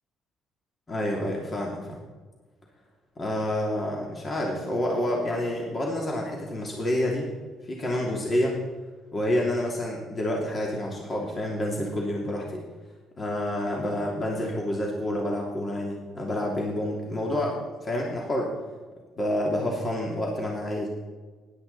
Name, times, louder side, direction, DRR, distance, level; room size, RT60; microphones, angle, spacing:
voice 1, 0.9-2.0 3.2-7.3 7.6-8.6 9.1-12.6 13.2-18.5 19.2-20.9, left 1 dB, 35° left, -1 dB, 2.9 m, -28 dB
16.0 x 11.5 x 4.2 m, 1.4 s
supercardioid pair, 75°, 0 cm